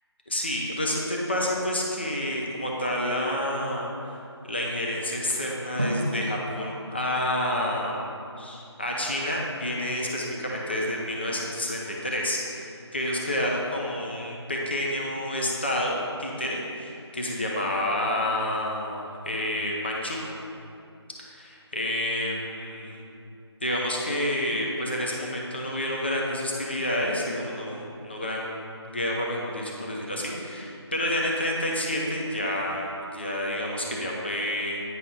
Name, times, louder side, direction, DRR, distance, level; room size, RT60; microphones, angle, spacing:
voice 1, 0.3-8.1 8.4-20.2 21.3-23.0 23.6-34.8, left 1 dB, 25° left, -2 dB, 0.6 m, -29 dB
Drum, 5.8-8.7, equal, 25° right, 0.4 m, -34 dB
9.4 x 5.7 x 3.8 m, 2.6 s
figure-of-eight pair, 175°, 14 cm